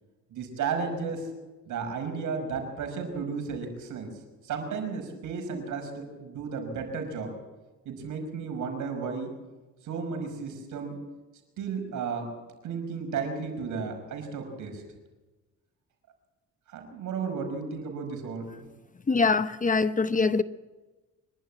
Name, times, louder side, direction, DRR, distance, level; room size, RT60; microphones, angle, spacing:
voice 1, 0.3-1.3 1.7-4.1 4.4-7.3 7.9-9.3 9.8-11.0 11.6-12.3 12.6-14.8 16.7-18.7, right 5 dB, 80° right, 5.6 m, -33 dB
voice 2, 19.1-20.4, left 4 dB, 25° left, 0.9 m, -23 dB
25.0 x 12.0 x 8.9 m
cardioid pair, 90°, 30 cm